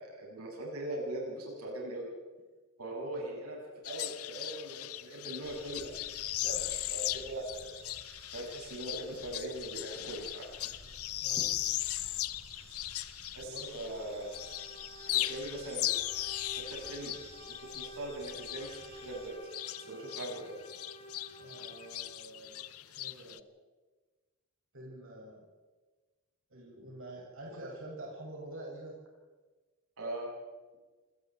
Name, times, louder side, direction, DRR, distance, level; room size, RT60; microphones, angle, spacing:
voice 1, 0.0-2.1 2.8-3.6 3.8-6.0 6.4-7.8 8.3-10.5 13.3-14.3 15.1-15.9 16.5-17.1 17.4-19.6 19.9-20.6 30.0-30.3, right 1 dB, 90° right, -2 dB, 8.0 m, -40 dB
sound 1, 3.8-14.0 14.3-20.4 20.7-23.4, left 15 dB, 80° left, 0.8 m, -38 dB
sound 2, 5.4-19.3, right 2 dB, 30° right, 4.9 m, -54 dB
sound 3, 14.0-22.4, right 2 dB, 30° left, 2.1 m, -51 dB
voice 2, 21.4-23.5 24.7-25.5 26.5-28.9, right 1 dB, 65° right, -3 dB, 7.3 m, -47 dB
28.5 x 20.5 x 4.8 m, 1.3 s
head